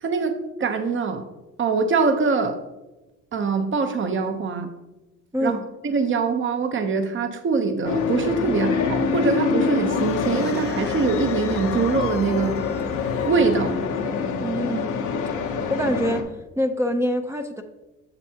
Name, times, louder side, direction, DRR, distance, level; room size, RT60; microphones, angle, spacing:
voice 1, 0.0-1.3 1.6-2.6 3.3-4.7 5.4-5.6 5.8-12.6 13.2-13.8, right 4 dB, 40° right, 7 dB, 0.9 m, -23 dB
voice 2, 5.3-5.6 14.4-14.9 15.7-16.3 16.6-17.6, equal, 10° right, 3 dB, 0.5 m, -25 dB
sound 1, 7.8-16.2, left 5 dB, 80° left, 0.9 m, -25 dB
sound 2, 9.8-14.2, left 9 dB, 50° left, 0.7 m, -38 dB
7.0 x 6.8 x 2.9 m, 1.0 s
cardioid pair, 90°, 30 cm